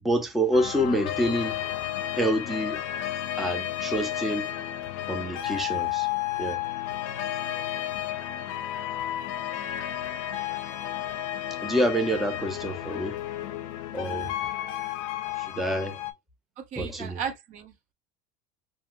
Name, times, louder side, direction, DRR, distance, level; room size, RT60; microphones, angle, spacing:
voice 1, 0.0-1.6 2.1-2.8 3.4-4.5 5.1-6.1 6.4-6.6 11.6-13.2 13.9-14.3 15.3-16.0 16.8-17.2, equal, ahead, 0.4 m, -27 dB
sound 1, 0.5-16.1, left 12 dB, 85° left, 0.4 m, -32 dB
voice 2, 16.6-17.9, right 7 dB, 50° right, 0.6 m, -36 dB
2.7 x 2.6 x 2.4 m
supercardioid pair, 130°, 17 cm